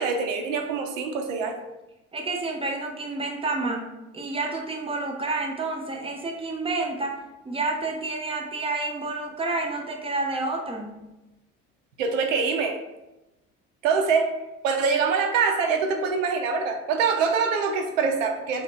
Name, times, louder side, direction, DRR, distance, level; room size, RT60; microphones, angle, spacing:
voice 1, 0.0-1.6 12.0-12.8 13.8-14.3 14.6-18.6, right 5 dB, 70° right, 5 dB, 0.6 m, -24 dB
voice 2, 2.1-3.9 4.1-7.2 7.5-10.9, right 3 dB, 15° right, 2 dB, 0.6 m, -29 dB
3.5 x 2.8 x 3.1 m, 1.0 s
figure-of-eight pair, 55°, 41 cm